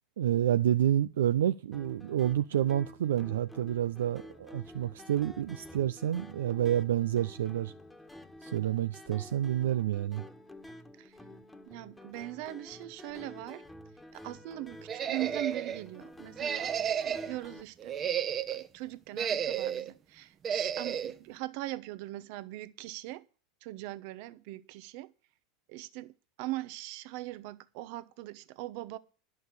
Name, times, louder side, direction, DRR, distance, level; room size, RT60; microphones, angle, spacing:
voice 1, 0.2-7.7 8.4-10.2, right 11 dB, 80° right, 0.5 m, -29 dB
sound 1, 1.7-17.6, left 1 dB, 10° left, 1.4 m, -50 dB
voice 2, 11.7-13.6 14.1-16.7 17.0-18.1 18.5-23.2 23.6-25.1 25.7-26.1 26.4-29.0, right 17 dB, 65° right, 0.9 m, -40 dB
sound 2, 14.9-15.8 16.4-17.3 17.8-18.7 19.1-19.9 20.4-21.1, right 8 dB, 35° right, 1.0 m, -32 dB
11.0 x 6.4 x 8.3 m
hypercardioid pair, 95°, 0 cm